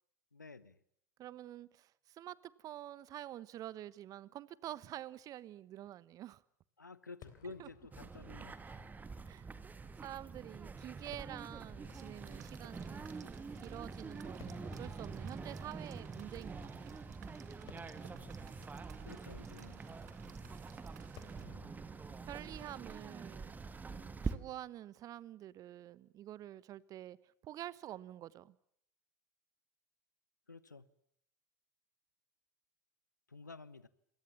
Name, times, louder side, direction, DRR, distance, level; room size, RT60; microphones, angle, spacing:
voice 1, 0.3-0.8 6.8-8.8 19.0-19.8 21.3-21.8 30.5-30.9 33.3-33.9, left 4 dB, 85° left, 1.1 m, -52 dB
voice 2, 1.2-6.4 7.6-7.7 9.3-9.5 10.0-13.2 13.6-17.1 22.2-23.5 23.8-27.2 27.4-28.6, right 13 dB, 40° right, 1.1 m, -48 dB
Fireworks, 7.2-24.5, left 10 dB, 50° left, 4.1 m, -63 dB
sound 1, 7.9-24.4, right 4 dB, 20° right, 2.2 m, -46 dB
sound 2, 11.8-21.4, right 10 dB, 65° right, 2.1 m, -61 dB
28.5 x 23.0 x 7.3 m
figure-of-eight pair, 75°, 10 cm